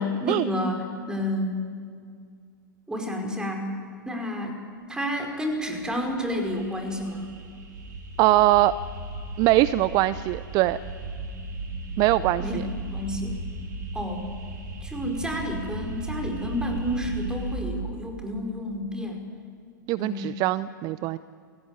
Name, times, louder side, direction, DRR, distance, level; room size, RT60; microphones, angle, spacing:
voice 1, 0.0-1.6 2.9-3.7 4.0-7.4 12.4-13.4 13.9-14.3 14.8-19.3 20.0-20.3, left 1 dB, 5° right, 3 dB, 4.7 m, -30 dB
sound 1, 5.5-17.6, right 2 dB, 60° right, 4.3 m, -36 dB
voice 2, 8.2-8.7 9.4-10.8 12.0-12.6 19.9-21.2, right 16 dB, 35° right, 17 dB, 0.6 m, -22 dB
28.0 x 16.5 x 9.8 m, 2.2 s
hypercardioid pair, 105°, 11 cm